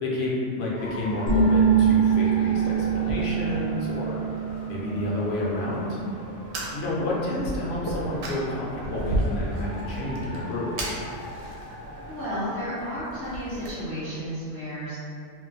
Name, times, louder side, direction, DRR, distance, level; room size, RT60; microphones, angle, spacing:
voice 1, 0.0-4.2 4.7-6.0 6.7-10.7, left 1 dB, 65° left, -5 dB, 0.8 m, -30 dB
sound 1, 0.7-12.6, equal, 30° right, 0.7 m, -41 dB
Fire, 0.8-13.7, right 1 dB, 65° right, 0.8 m, -36 dB
sound 2, 1.3-6.7, right 6 dB, 85° left, 1.0 m, -24 dB
voice 2, 12.1-15.0, equal, 25° left, -11 dB, 0.6 m, -32 dB
2.4 x 2.1 x 3.9 m, 2.4 s
omnidirectional pair, 1.3 m